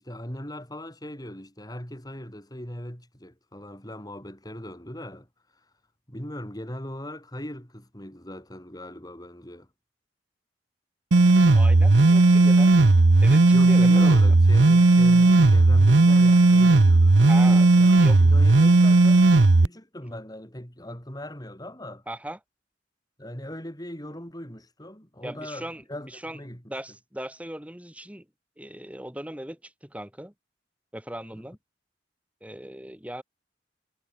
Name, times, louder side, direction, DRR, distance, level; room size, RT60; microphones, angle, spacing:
voice 1, 0.0-5.3 6.1-9.7 13.5-19.3 19.6-22.0 23.2-26.7 31.3-31.4, left 1 dB, 20° left, 7.3 m, -39 dB
sound 1, 11.1-19.7, right 2 dB, 75° right, 0.9 m, -16 dB
voice 2, 11.5-12.8 13.2-14.3 17.3-18.2 22.1-22.4 25.2-26.4 26.7-28.2 28.6-30.3 30.9-31.6 32.4-33.2, right 1 dB, 5° right, 3.1 m, -38 dB
head